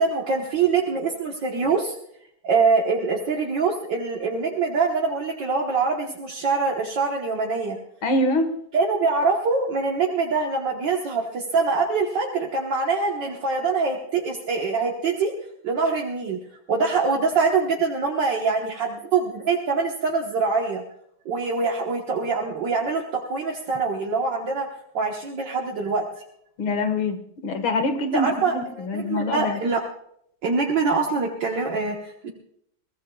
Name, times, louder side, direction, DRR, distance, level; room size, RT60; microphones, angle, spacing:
voice 1, 0.0-2.0 2.4-7.8 8.7-15.3 15.6-16.4 16.7-20.8 21.3-24.7 24.9-26.1 28.1-29.8 30.4-32.3, right 4 dB, 65° right, -1 dB, 2.0 m, -24 dB
voice 2, 8.0-8.5 26.6-29.6, left 2 dB, 80° left, 7 dB, 2.5 m, -25 dB
22.0 x 18.0 x 2.4 m, 0.71 s
omnidirectional pair, 2.2 m